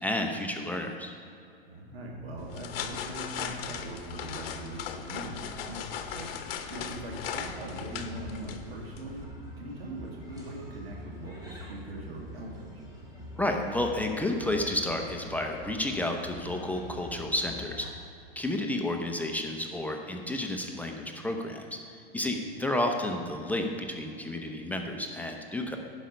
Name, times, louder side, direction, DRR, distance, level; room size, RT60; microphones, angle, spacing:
voice 1, 0.0-1.1 13.4-17.9 18.4-21.8 22.1-25.8, left 1 dB, 5° left, 2 dB, 0.7 m, -31 dB
voice 2, 1.7-9.2 9.6-12.8 22.3-22.4, right 1 dB, 90° right, -1 dB, 2.0 m, -41 dB
sound 1, 2.4-9.2, left 8 dB, 70° left, 0.9 m, -38 dB
sound 2, 7.5-17.9, left 1 dB, 10° right, 1.9 m, -45 dB
11.0 x 5.3 x 5.3 m, 2.6 s
hypercardioid pair, 105°, 30 cm